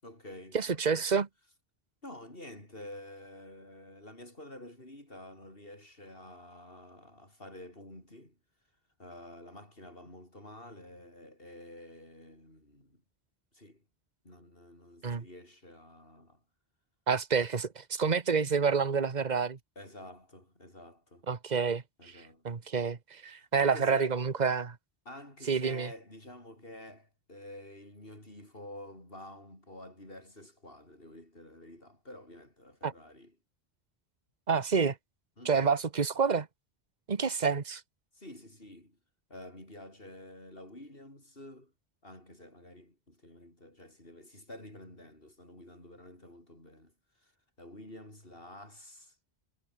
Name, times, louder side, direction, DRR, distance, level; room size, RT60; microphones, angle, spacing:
voice 1, 0.0-1.0 2.0-8.4 9.0-13.0 13.5-13.8 14.2-16.4 19.7-21.3 22.0-22.5 23.4-24.2 25.0-33.3 35.4-35.7 38.1-39.0 39.3-41.7 42.0-49.2, left 1 dB, 60° left, 8.4 m, -49 dB
voice 2, 0.5-1.3 15.0-15.2 17.1-19.6 21.3-24.8 25.5-25.9 32.8-32.9 34.5-35.0 35.4-36.5 37.1-37.8, right 5 dB, 40° right, 1.4 m, -28 dB
omnidirectional pair, 1.1 m